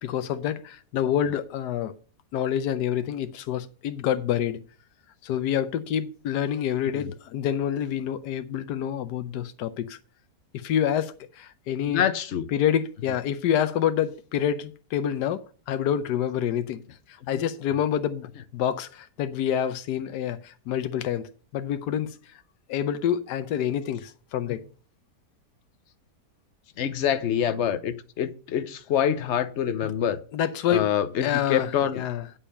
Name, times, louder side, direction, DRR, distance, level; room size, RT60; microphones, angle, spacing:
voice 1, 0.0-1.9 2.3-4.6 5.2-10.0 10.5-12.0 12.5-16.8 17.3-21.3 21.5-22.4 22.7-24.6 29.8-29.9 30.3-30.9 31.2-32.2, left 9 dB, 85° left, 1.3 m, -27 dB
voice 2, 11.9-12.5 17.3-17.5 26.8-30.2 30.7-32.0, left 9 dB, 55° left, 0.9 m, -26 dB
8.6 x 7.4 x 5.4 m
omnidirectional pair, 1.7 m